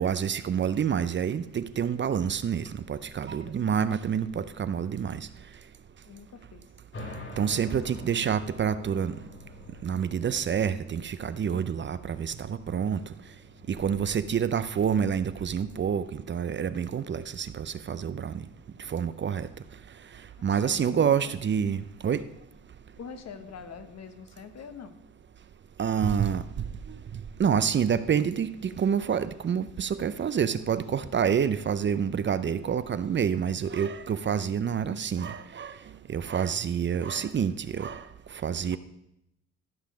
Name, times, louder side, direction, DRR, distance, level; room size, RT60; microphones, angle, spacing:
voice 1, 0.0-5.2 7.4-9.1 9.8-13.0 13.7-18.4 18.9-19.5 20.4-22.2 25.8-26.4 27.1-35.8 36.1-38.0 38.4-38.8, right 7 dB, 40° right, 13 dB, 0.6 m, -28 dB
voice 2, 6.1-6.7 20.4-21.3 23.0-24.9, left 6 dB, 60° left, 9 dB, 1.3 m, -44 dB
sound 1, 6.9-18.0, left 1 dB, 45° left, 3.0 m, -47 dB
14.0 x 5.6 x 6.3 m, 0.82 s
cardioid pair, 90°, 30 cm